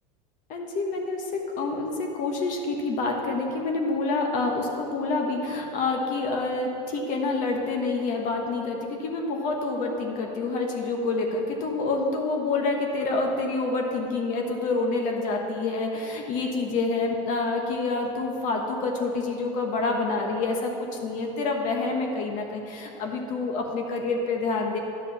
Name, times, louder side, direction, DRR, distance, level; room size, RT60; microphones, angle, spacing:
voice 1, 0.5-24.8, left 3 dB, 50° left, 2 dB, 1.2 m, -27 dB
10.5 x 4.9 x 7.0 m, 2.9 s
supercardioid pair, 125°, 17 cm